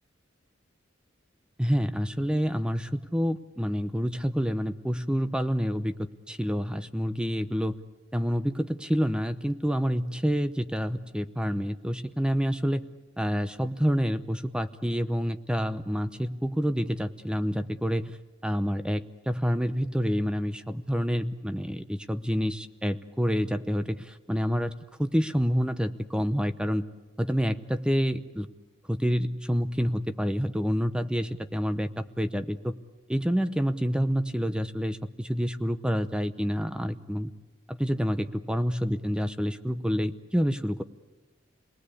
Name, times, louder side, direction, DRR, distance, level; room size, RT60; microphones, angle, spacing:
voice 1, 1.6-7.8 8.1-12.8 13.2-18.2 18.4-26.8 27.2-28.5 28.9-32.7 33.1-37.3 37.7-40.8, equal, 5° right, 11 dB, 0.7 m, -28 dB
28.5 x 19.5 x 8.4 m, 1.2 s
head